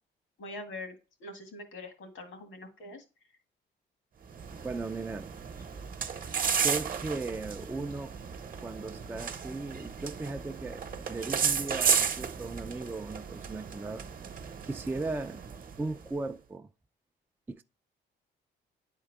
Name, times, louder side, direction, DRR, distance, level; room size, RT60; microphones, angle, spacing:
voice 1, 0.4-3.0, left 2 dB, 80° left, 1.9 m, -43 dB
sound 1, 4.3-16.0, right 6 dB, 45° right, 0.9 m, -34 dB
voice 2, 4.6-5.3 6.5-8.2 8.6-14.1 14.7-15.4 15.8-16.7 17.5-17.6, right 3 dB, 10° right, 0.3 m, -37 dB
9.9 x 3.7 x 3.5 m
cardioid pair, 90°, 20 cm